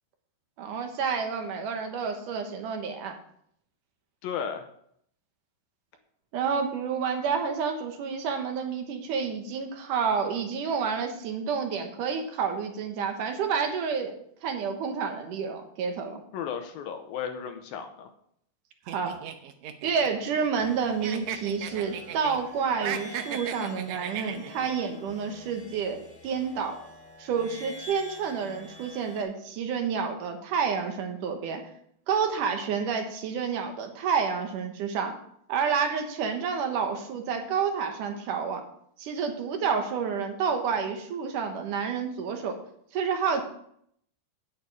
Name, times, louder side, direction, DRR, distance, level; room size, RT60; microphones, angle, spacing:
voice 1, 0.6-3.1 6.3-14.2 14.4-16.2 18.9-19.2 19.8-26.8 27.2-31.6 32.1-35.1 35.5-38.6 39.0-42.6 42.9-43.4, right 6 dB, 65° right, 5 dB, 2.5 m, -29 dB
voice 2, 4.2-4.7 16.3-18.1, left 7 dB, 75° left, 6 dB, 2.4 m, -34 dB
sound 1, 18.9-20.7 21.0-22.4 22.7-24.7, right 9 dB, 85° right, 1.7 m, -36 dB
sound 2, 20.6-29.2, left 1 dB, 25° left, 1.9 m, -47 dB
9.4 x 9.0 x 4.7 m, 0.68 s
omnidirectional pair, 4.5 m